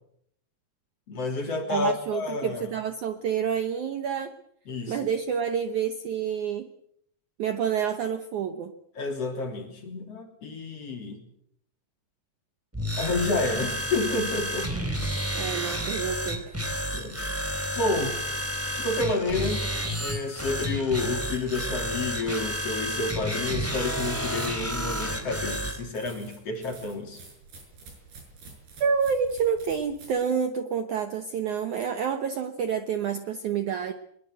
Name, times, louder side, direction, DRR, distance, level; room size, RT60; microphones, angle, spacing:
voice 1, 1.1-2.7 4.7-5.0 9.0-11.2 12.9-14.8 16.9-17.2 17.8-18.2 18.7-19.7 20.0-27.2, left 3 dB, 35° left, 4 dB, 3.8 m, -30 dB
voice 2, 1.7-4.3 4.9-6.7 7.4-8.7 15.3-16.6 28.8-33.9, right 7 dB, 85° right, 8 dB, 1.7 m, -28 dB
sound 1, 12.7-25.8, equal, 5° right, 2.7 m, -31 dB
sound 2, 24.0-30.2, right 4 dB, 55° right, 8.0 m, -49 dB
22.5 x 22.0 x 7.9 m, 0.72 s
omnidirectional pair, 5.3 m